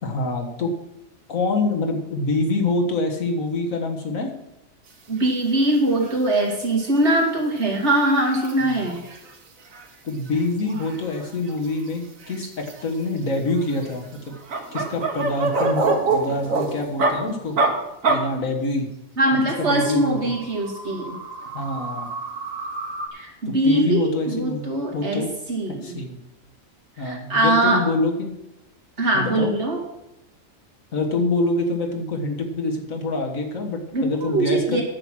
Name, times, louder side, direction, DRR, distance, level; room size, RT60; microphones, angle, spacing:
voice 1, 0.0-0.7 1.3-4.3 8.6-8.9 10.0-14.3 14.7-17.6 18.1-18.9 19.6-20.3 21.5-22.1 23.5-24.7 24.9-25.3 25.8-26.2 27.0-28.3 29.1-29.5 30.9-34.8, left 2 dB, 80° left, 3 dB, 2.0 m, -25 dB
voice 2, 5.1-9.0 19.2-21.2 23.1-26.0 27.0-27.8 29.0-29.8 33.9-34.8, right 1 dB, 55° right, 0 dB, 2.6 m, -22 dB
sound 1, 5.2-5.4 5.7-6.1 6.5-6.6 7.0-7.1 7.4-9.3 9.7-9.8 10.1-11.9 12.2-13.0 13.5-17.1 17.6-17.7 18.0-18.2 19.3-23.1, right 3 dB, 80° right, 1.7 m, -27 dB
10.0 x 7.9 x 6.1 m, 0.87 s
omnidirectional pair, 1.4 m